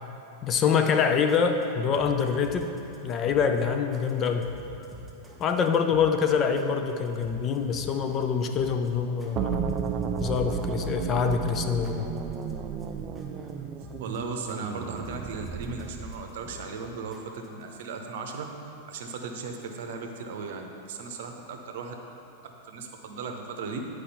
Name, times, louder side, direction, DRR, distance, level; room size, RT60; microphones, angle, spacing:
voice 1, 0.4-2.7 3.0-4.5 5.4-9.7 10.2-12.1, left 6 dB, 30° left, 6 dB, 0.5 m, -25 dB
sound 1, 1.0-17.6, equal, 5° right, 1.0 m, -48 dB
sound 2, 9.4-16.3, right 7 dB, 30° right, 0.4 m, -33 dB
voice 2, 14.0-18.5 18.9-22.0 22.7-23.8, right 4 dB, 55° right, 4 dB, 0.8 m, -37 dB
10.0 x 4.8 x 4.2 m, 2.8 s
figure-of-eight pair, 90°, 0 cm